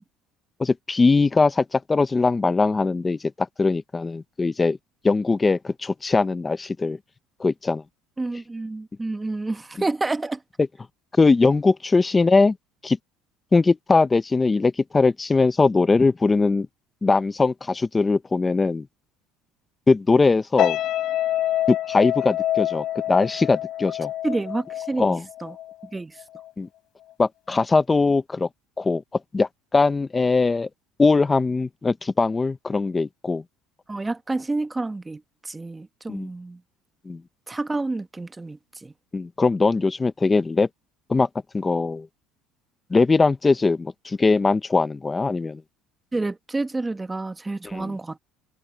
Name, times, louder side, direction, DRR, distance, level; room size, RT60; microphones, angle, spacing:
voice 1, 0.6-4.8 5.0-7.0 7.4-7.8 11.2-12.6 12.8-13.0 13.5-16.7 17.0-18.9 19.9-20.8 21.7-24.1 25.0-25.2 26.6-26.7 27.2-28.5 28.8-29.0 29.3-30.7 31.0-33.4 36.1-36.3 37.1-37.2 39.1-40.7 41.1-41.3 41.5-42.1 42.9-45.6 47.6-47.9, left 3 dB, 15° left, 0.7 m, -21 dB
voice 2, 8.2-10.4 24.2-25.6 25.9-26.2 33.9-36.6 37.5-38.9 46.1-48.2, right 2 dB, 10° right, 1.0 m, -29 dB
sound 1, 20.6-25.9 26.2-26.5, left 13 dB, 55° left, 4.4 m, -27 dB
cardioid pair, 135°, 0 cm